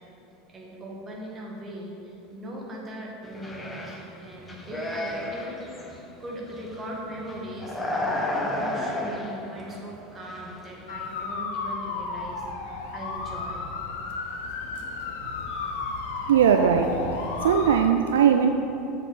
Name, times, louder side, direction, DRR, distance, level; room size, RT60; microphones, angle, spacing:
voice 1, 0.5-5.6 6.2-13.7 15.5-15.7, right 1 dB, 25° right, -2 dB, 1.8 m, -39 dB
sound 1, 3.2-4.0 4.4-6.0 6.5-6.8 7.1-9.9 10.2-10.7, left 1 dB, 15° left, 1.1 m, -32 dB
sound 2, 10.9-17.7, left 4 dB, 65° left, 0.9 m, -33 dB
voice 2, 16.3-17.0 17.4-18.5, right 8 dB, 70° right, 6 dB, 0.3 m, -19 dB
7.3 x 4.9 x 6.3 m, 2.9 s
figure-of-eight pair, 80°, 0 cm